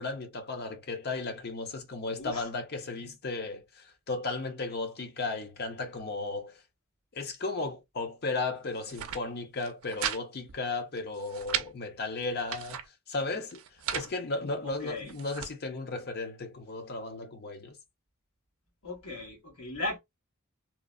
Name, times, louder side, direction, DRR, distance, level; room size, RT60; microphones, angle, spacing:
voice 1, 0.0-6.6 7.1-12.8 13.1-13.6 13.9-17.8, left 3 dB, 50° left, 0.7 m, -35 dB
voice 2, 2.2-2.5 14.6-15.1 18.8-20.0, left 2 dB, 75° left, 1.3 m, -37 dB
sound 1, 8.7-9.2 9.6-10.2 10.5-10.6 11.0-11.7 12.2-12.9 13.5-14.1 14.8-15.5, right 9 dB, 65° right, 0.5 m, -36 dB
3.0 x 2.0 x 2.4 m
head